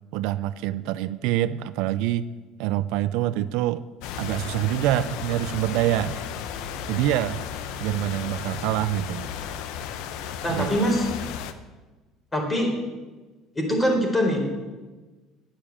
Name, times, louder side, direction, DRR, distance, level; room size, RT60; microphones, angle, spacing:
voice 1, 0.1-2.3 2.6-3.8 4.2-6.2 6.9-7.4 7.8-9.3 10.5-10.7, right 13 dB, 75° right, 14 dB, 0.5 m, -25 dB
sound 1, 4.0-11.5, left 8 dB, 75° left, 0.9 m, -34 dB
voice 2, 10.4-11.1 12.3-12.7 13.5-14.4, equal, 15° left, 1 dB, 4.3 m, -23 dB
9.2 x 8.9 x 8.5 m, 1.2 s
supercardioid pair, 95°, 0 cm